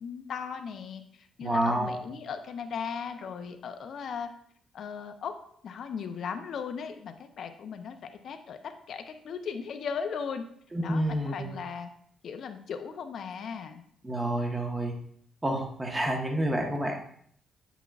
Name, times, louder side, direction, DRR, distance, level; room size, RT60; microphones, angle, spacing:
voice 1, 0.0-4.3 4.7-5.4 5.6-8.0 8.2-10.4 10.8-11.9 12.2-13.8, left 6 dB, 60° left, 7 dB, 0.6 m, -37 dB
voice 2, 1.4-2.0 10.7-11.6 14.0-14.9 15.4-17.0, right 1 dB, 20° right, 1 dB, 1.2 m, -29 dB
8.1 x 5.9 x 2.4 m, 0.65 s
cardioid pair, 90°, 0 cm